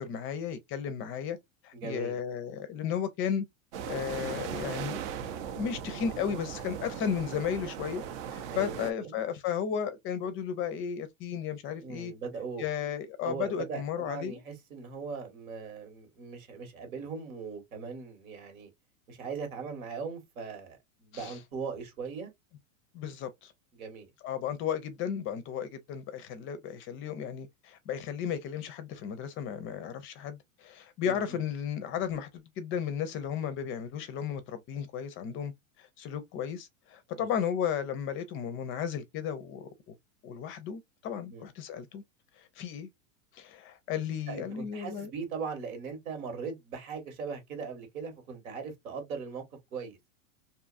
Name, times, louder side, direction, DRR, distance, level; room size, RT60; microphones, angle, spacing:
voice 1, 0.0-1.4 1.6-3.5 3.9-5.0 5.6-8.0 8.3-12.1 12.6-14.4 21.1-21.4 22.9-23.5 24.2-35.5 35.8-39.9 40.2-42.0 42.4-42.9 43.3-45.1, left 8 dB, 30° left, 0.5 m, -34 dB
voice 2, 1.7-2.2 8.5-9.1 11.8-12.7 13.2-18.7 19.1-22.3 23.7-24.1 31.0-31.4 37.1-37.3 41.3-41.4 44.3-49.4 49.7-50.0, right 5 dB, 85° right, 1.7 m, -39 dB
sound 1, 3.7-8.9, right 8 dB, 60° right, 0.6 m, -38 dB
2.7 x 2.4 x 2.4 m
hypercardioid pair, 120°, 41 cm